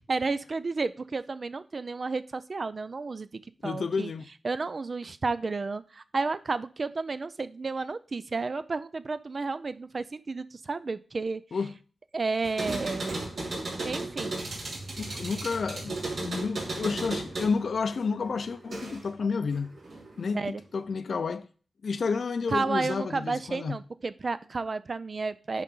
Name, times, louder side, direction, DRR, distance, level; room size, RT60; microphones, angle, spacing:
voice 1, 0.1-4.1 4.4-11.4 12.1-13.2 13.8-14.4 20.3-20.6 22.5-25.6, right 3 dB, 45° right, 0.4 m, -32 dB
voice 2, 3.6-4.3 11.5-11.7 15.0-16.0 16.2-19.7 20.2-21.5 21.8-23.8, left 5 dB, 65° left, 0.6 m, -30 dB
sound 1, 12.4-19.2 19.5-20.4, right 2 dB, 70° right, 3.0 m, -35 dB
10.5 x 3.9 x 3.8 m
wide cardioid pair, 105°, 0 cm